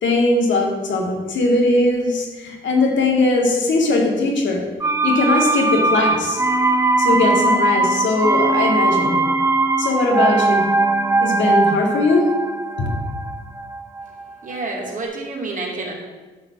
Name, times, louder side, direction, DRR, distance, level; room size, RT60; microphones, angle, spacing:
voice 1, 0.0-4.6 5.0-6.4 7.0-9.2 9.8-10.7 11.2-12.3 12.8-12.9, left 2 dB, 70° left, 1 dB, 2.1 m, -19 dB
sound 1, 4.8-14.5 14.8-14.9, right 2 dB, 15° right, 0.7 m, -20 dB
voice 2, 14.4-15.9, right 3 dB, 40° right, -2 dB, 2.8 m, -28 dB
10.5 x 4.1 x 7.0 m, 1.3 s
cardioid pair, 90°, 20 cm